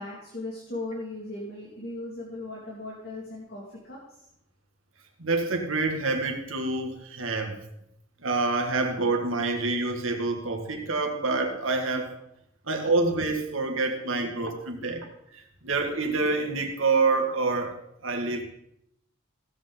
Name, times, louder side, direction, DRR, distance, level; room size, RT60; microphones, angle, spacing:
voice 1, 0.0-4.2 14.8-15.0, left 2 dB, 50° left, -4 dB, 2.5 m, -38 dB
voice 2, 5.2-7.6 8.2-12.2 12.7-15.0 15.3-17.7 18.0-18.4, right 3 dB, 80° right, 3 dB, 2.0 m, -27 dB
16.5 x 8.0 x 4.0 m, 0.78 s
head